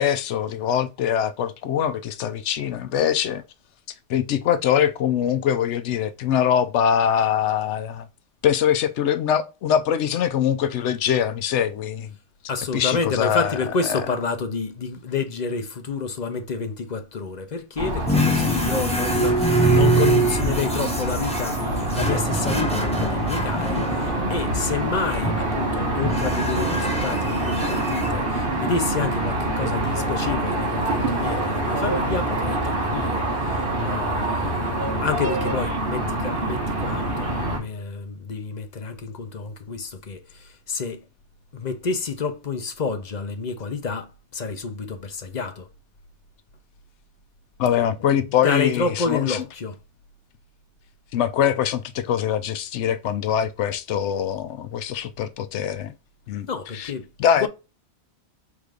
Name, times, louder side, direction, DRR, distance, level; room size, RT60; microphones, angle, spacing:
voice 1, 0.0-3.4 4.1-8.1 8.4-12.1 12.7-13.5 13.9-14.0 47.6-49.4 51.1-55.9 56.3-56.5 56.7-56.9 57.2-57.5, left 9 dB, 80° left, 0.9 m, -23 dB
voice 2, 12.5-33.2 33.5-41.0 41.5-45.7 47.8-47.9 48.4-49.8 56.5-57.1 57.4-57.5, left 4 dB, 45° left, 0.7 m, -29 dB
sound 1, 17.8-37.6, right 1 dB, 50° right, 1.6 m, -26 dB
sound 2, 18.1-24.5 25.0-25.6 26.0-28.1, right 1 dB, 5° left, 0.9 m, -24 dB
4.9 x 3.7 x 2.4 m
omnidirectional pair, 1.2 m